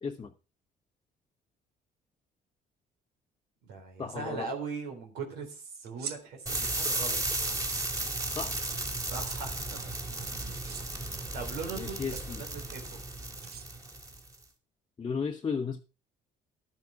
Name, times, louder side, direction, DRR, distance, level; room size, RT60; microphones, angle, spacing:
voice 1, 0.0-0.3 4.0-4.5 8.4-8.6 11.7-12.4 15.0-15.8, left 5 dB, 25° left, 1.0 m, -34 dB
voice 2, 3.6-7.2 9.1-9.9 10.2-10.7 11.3-13.0, right 4 dB, 90° right, 3.8 m, -40 dB
sound 1, 5.9-6.2 7.5-7.9 9.1-9.4 10.5-10.8 11.9-12.2 13.4-14.0, right 8 dB, 70° right, 1.6 m, -42 dB
sound 2, 6.5-14.4, right 2 dB, 20° right, 2.8 m, -34 dB
12.0 x 9.4 x 4.7 m
cardioid pair, 110°, 17 cm